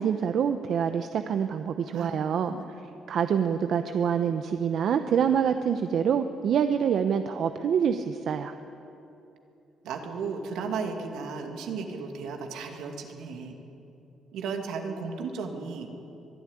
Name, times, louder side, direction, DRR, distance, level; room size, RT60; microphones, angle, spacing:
voice 1, 0.0-2.5 3.1-8.5, right 7 dB, 65° right, 8 dB, 0.8 m, -26 dB
voice 2, 1.9-2.8 9.8-13.6 14.3-15.9, right 5 dB, 85° right, 3 dB, 2.4 m, -35 dB
23.0 x 12.0 x 9.9 m, 2.9 s
cardioid pair, 80°, 0 cm